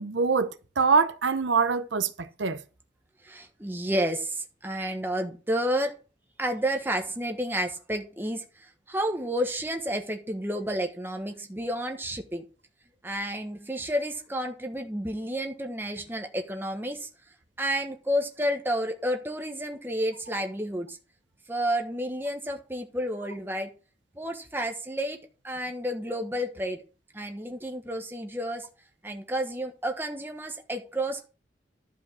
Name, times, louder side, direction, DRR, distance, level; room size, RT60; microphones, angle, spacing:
voice 1, 0.0-2.6, right 5 dB, 80° right, 0.8 m, -24 dB
voice 2, 3.2-6.0 6.4-12.4 13.0-17.1 17.6-21.0 21.5-23.7 24.2-25.2 25.4-26.8 27.1-28.7 29.0-31.3, equal, 10° right, 1.2 m, -31 dB
12.0 x 5.2 x 6.2 m
head